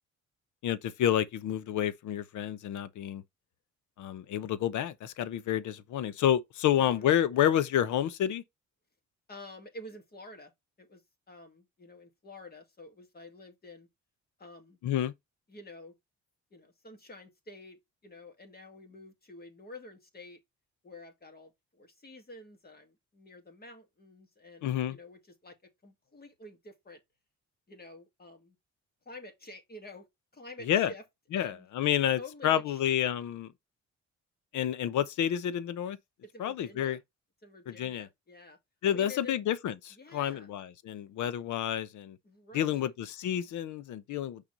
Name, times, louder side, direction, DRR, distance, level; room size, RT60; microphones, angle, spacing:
voice 1, 0.6-3.2 4.0-8.4 14.8-15.1 24.6-25.0 30.7-30.9 31.3-33.5 34.5-36.0 36.4-37.0 37.7-38.1 38.8-42.2 42.5-44.4, left 10 dB, 75° left, 0.8 m, -29 dB
voice 2, 6.7-7.1 9.3-10.5 10.8-13.9 14.4-14.8 15.5-16.0 16.5-20.4 20.8-25.6 25.8-27.0 27.7-28.6 29.1-30.1 30.3-31.0 31.3-31.7 32.2-32.8 36.2-37.0 37.4-38.6 38.8-39.4 39.9-40.5 42.2-42.9, left 2 dB, 30° left, 2.3 m, -49 dB
6.0 x 4.1 x 3.9 m
cardioid pair, 90°, 30 cm